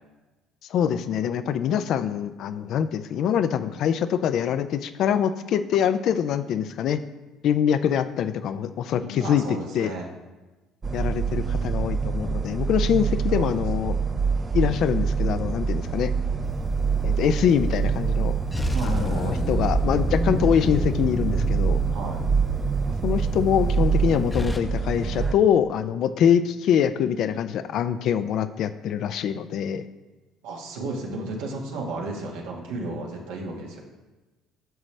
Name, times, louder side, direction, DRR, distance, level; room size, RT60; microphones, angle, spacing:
voice 1, 0.7-7.0 7.4-9.4 9.7-9.9 10.9-13.9 14.5-16.1 17.0-18.3 18.8-21.8 23.0-29.9, left 8 dB, 65° left, 11 dB, 0.4 m, -24 dB
voice 2, 9.0-10.1 11.3-11.8 13.3-13.5 18.7-19.4 21.9-22.2 30.4-33.8, right 2 dB, 85° right, -1 dB, 1.5 m, -34 dB
sound 1, 10.8-25.3, right 5 dB, 30° right, 0.5 m, -25 dB
sound 2, 16.5-17.1 18.5-24.6, left 2 dB, 15° left, 0.7 m, -29 dB
9.1 x 6.1 x 3.3 m, 1.2 s
supercardioid pair, 75°, 0 cm